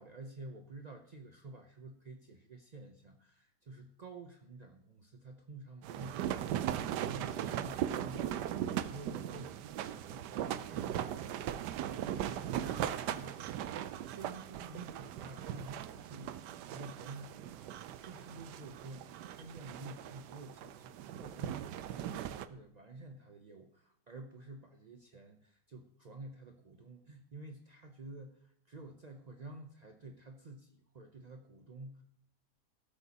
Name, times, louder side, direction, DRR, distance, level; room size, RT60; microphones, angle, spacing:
voice 1, 0.0-32.0, right 2 dB, 60° right, 4 dB, 0.4 m, -50 dB
sound 1, 5.8-22.5, right 11 dB, 90° right, 1.2 m, -39 dB
18.5 x 8.2 x 2.9 m, 0.67 s
omnidirectional pair, 1.8 m